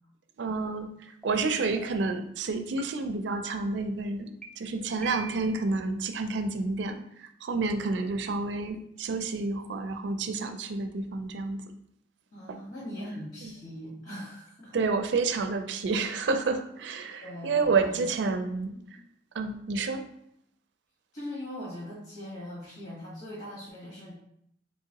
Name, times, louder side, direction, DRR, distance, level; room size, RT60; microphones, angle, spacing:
voice 1, 0.4-0.9 1.2-4.3 4.6-11.6 12.5-12.6 13.4-13.5 14.7-18.7 19.3-20.0, right 3 dB, 70° right, 7 dB, 0.4 m, -29 dB
sound 1, 1.2-1.3 1.8-2.1 2.8-2.9 3.3-3.8 4.4-4.5 5.0-5.6, right 4 dB, 5° left, 0.3 m, -43 dB
voice 2, 12.3-14.8 17.2-18.1 18.9-19.0 21.1-24.2, left 1 dB, 60° left, -7 dB, 1.4 m, -41 dB
3.9 x 2.8 x 2.8 m, 0.71 s
head